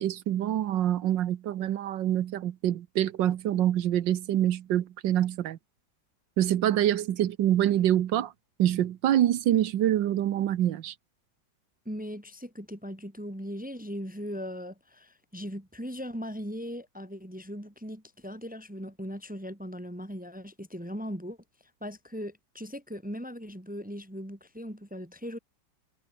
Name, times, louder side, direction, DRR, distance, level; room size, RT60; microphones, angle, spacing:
voice 1, 0.0-5.6 6.4-8.3 8.6-10.9, right 11 dB, 80° right, 1.6 m, -26 dB
voice 2, 11.8-21.4 21.8-25.4, equal, 5° right, 2.5 m, -39 dB
omnidirectional pair, 2.0 m